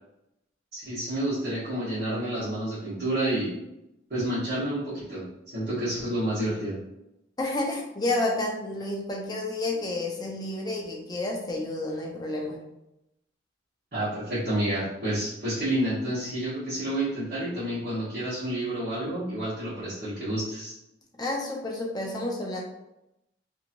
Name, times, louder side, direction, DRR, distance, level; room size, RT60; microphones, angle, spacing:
voice 1, 0.7-3.5 4.1-5.2 5.5-6.8 13.9-20.7, right 1 dB, 50° right, -13 dB, 1.2 m, -29 dB
voice 2, 7.4-12.6 21.2-22.6, left 2 dB, 20° left, -1 dB, 0.5 m, -30 dB
2.8 x 2.8 x 2.5 m, 0.88 s
head